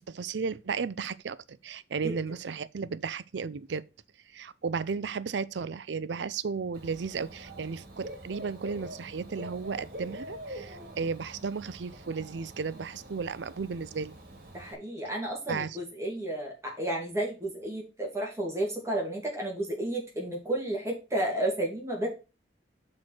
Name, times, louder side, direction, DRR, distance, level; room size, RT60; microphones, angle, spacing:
voice 1, 0.0-3.8 4.3-14.1 15.5-15.8, right 5 dB, 75° right, 0.5 m, -34 dB
Dog / Bird, 6.7-14.7, right 1 dB, 55° right, 2.2 m, -45 dB
voice 2, 14.5-22.1, right 1 dB, 15° right, 2.4 m, -32 dB
6.2 x 4.4 x 6.3 m
head